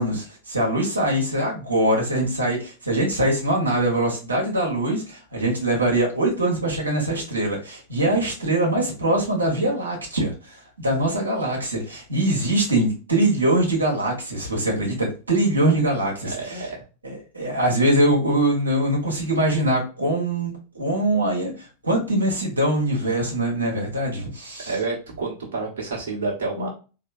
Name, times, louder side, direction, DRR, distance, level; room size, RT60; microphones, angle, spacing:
voice 1, 0.0-16.7 17.0-24.7, right 1 dB, 80° right, -1 dB, 1.3 m, -23 dB
voice 2, 16.2-16.8 24.7-26.7, right 3 dB, 60° right, -2 dB, 1.3 m, -29 dB
4.2 x 2.8 x 2.6 m, 0.34 s
figure-of-eight pair, 90°, 0 cm